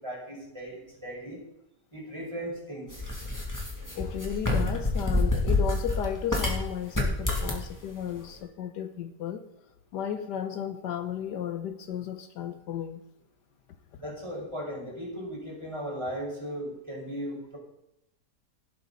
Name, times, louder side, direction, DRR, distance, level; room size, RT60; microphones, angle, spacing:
voice 1, 0.0-1.4 1.9-3.0 14.0-17.6, equal, 15° right, 5.4 m, -37 dB
sound 1, 2.9-6.6 6.9-7.7, left 2 dB, 10° left, 2.4 m, -27 dB
voice 2, 3.9-9.5 9.9-13.0, left 9 dB, 80° left, 1.4 m, -34 dB
17.5 x 8.4 x 4.1 m
omnidirectional pair, 1.8 m